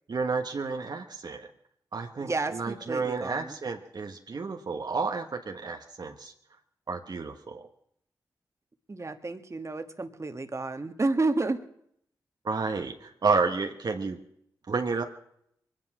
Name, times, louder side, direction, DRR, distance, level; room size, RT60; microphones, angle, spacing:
voice 1, 0.1-1.5 1.9-6.3 6.9-7.7 12.4-14.2 14.7-15.0, right 4 dB, 60° right, 4 dB, 1.2 m, -31 dB
voice 2, 2.2-3.6 8.9-11.6, right 3 dB, 35° right, 8 dB, 1.5 m, -30 dB
22.5 x 10.5 x 6.1 m, 0.70 s
cardioid pair, 45°, 8 cm